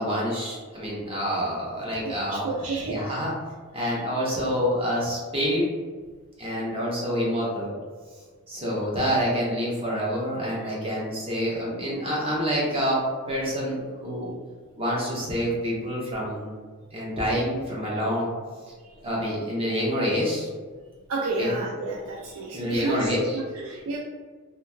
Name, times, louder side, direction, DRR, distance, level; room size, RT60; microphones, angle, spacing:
voice 1, 0.0-2.5 2.8-3.3 3.7-5.7 6.4-7.7 8.1-8.2 8.5-14.3 14.8-16.5 16.9-18.3 19.0-20.5 21.4-21.5 22.5-23.4, equal, 25° right, -5 dB, 0.7 m, -27 dB
voice 2, 2.0-3.0 21.1-24.0, right 2 dB, 70° right, -2 dB, 0.3 m, -31 dB
2.9 x 2.6 x 2.2 m, 1.5 s
head